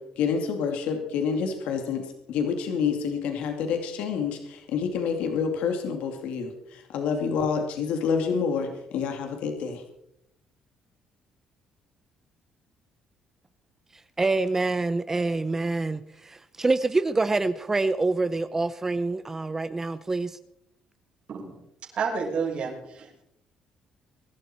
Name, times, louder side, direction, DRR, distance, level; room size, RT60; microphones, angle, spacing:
voice 1, 0.2-9.8, left 6 dB, 80° left, 4 dB, 2.5 m, -28 dB
voice 2, 14.2-20.4, right 3 dB, 20° right, 12 dB, 0.7 m, -26 dB
voice 3, 21.9-23.2, right 5 dB, 55° right, -3 dB, 6.1 m, -30 dB
23.0 x 12.0 x 4.4 m, 0.78 s
cardioid pair, 105°, 2 cm